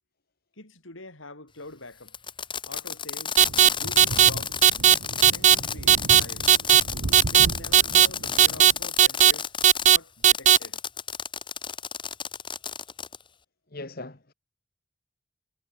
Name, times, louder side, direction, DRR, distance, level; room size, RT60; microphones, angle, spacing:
voice 1, 0.6-2.2 2.7-3.4 3.7-4.6 5.3-6.5 7.3-9.5 9.8-10.8, left 2 dB, 75° left, 5.9 m, -45 dB
Fireworks, 2.1-9.9 10.3-13.2, left 7 dB, 25° left, 3.5 m, -33 dB
sound 1, 3.4-3.7 4.0-4.3 4.6-4.9 5.2-5.5 5.9-6.2 6.5-6.8 7.1-7.5 7.7-8.1 8.4-8.7 9.0-9.3 9.6-10.0 10.2-10.6, right 10 dB, 35° right, 0.6 m, -15 dB
sound 2, 3.4-8.9, right 2 dB, 80° right, 1.0 m, -36 dB
voice 2, 13.7-14.3, left 2 dB, 50° left, 1.9 m, -39 dB
head